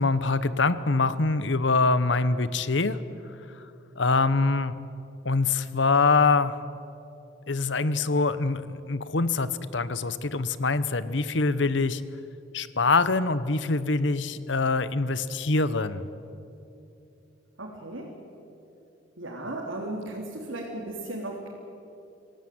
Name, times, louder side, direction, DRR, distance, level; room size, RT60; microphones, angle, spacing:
voice 1, 0.0-3.0 4.0-4.8 5.2-6.5 7.5-12.0 12.5-16.1, left 3 dB, 65° left, 15 dB, 1.0 m, -24 dB
voice 2, 17.6-18.1 19.2-21.5, right 2 dB, 90° right, -3 dB, 3.7 m, -35 dB
27.0 x 17.0 x 9.5 m, 2.8 s
head